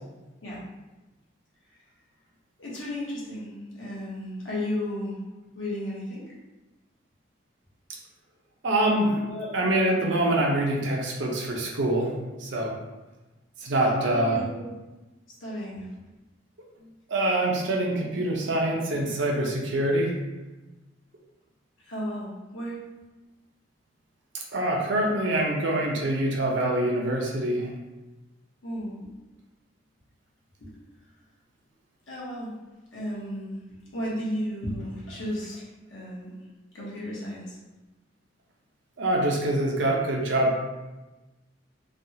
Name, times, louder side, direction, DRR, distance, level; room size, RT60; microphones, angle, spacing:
voice 1, 2.6-5.2 5.5-6.2 9.2-9.5 13.8-14.7 15.4-15.9 21.8-22.8 28.6-29.0 30.6-30.8 32.1-32.5 32.9-33.6 33.9-36.3 36.7-37.6, left 1 dB, 75° left, -6 dB, 1.0 m, -34 dB
voice 2, 8.6-9.2 9.5-12.1 12.4-12.7 13.6-14.4 17.1-20.1 24.5-27.7 39.0-40.6, right 1 dB, 65° right, -1 dB, 0.6 m, -25 dB
3.4 x 2.2 x 2.7 m, 1.1 s
head